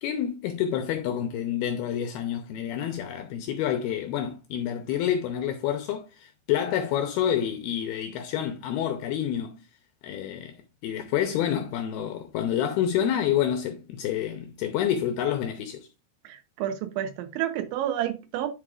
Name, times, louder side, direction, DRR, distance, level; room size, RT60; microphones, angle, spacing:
voice 1, 0.0-9.6 10.0-10.6 10.8-15.9, left 10 dB, 80° left, 2.3 m, -28 dB
voice 2, 16.2-18.5, right 11 dB, 80° right, 3.4 m, -30 dB
9.9 x 6.5 x 2.5 m
omnidirectional pair, 5.2 m